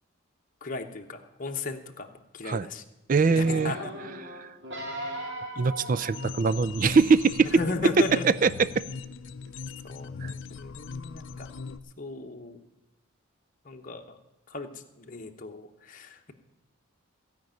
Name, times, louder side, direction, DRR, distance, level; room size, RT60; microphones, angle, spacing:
voice 1, 0.6-2.8 3.2-3.9 5.7-5.9 7.5-8.2 9.8-11.5 12.0-12.6 13.6-14.2 14.5-16.3, left 3 dB, 40° left, 4 dB, 0.9 m, -36 dB
voice 2, 3.1-3.8 4.2-4.5 5.6-7.5 7.8-8.7 10.2-10.3, right 4 dB, 40° right, 16 dB, 0.4 m, -22 dB
sound 1, 3.4-6.9 7.5-7.6, right 1 dB, 55° right, 2.5 m, -38 dB
sound 2, 6.1-11.8, left 5 dB, 60° left, 0.5 m, -39 dB
16.0 x 5.3 x 9.0 m, 1.0 s
head